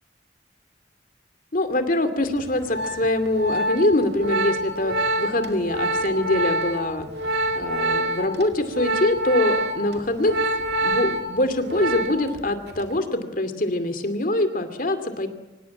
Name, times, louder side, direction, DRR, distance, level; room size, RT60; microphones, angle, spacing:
voice 1, 1.5-7.1 7.5-10.3 10.8-15.3, left 1 dB, 50° left, 9 dB, 2.5 m, -24 dB
Organ, 2.4-12.4 12.7-13.0, right 1 dB, 65° right, 2.4 m, -26 dB
25.0 x 18.0 x 8.8 m, 1.1 s
head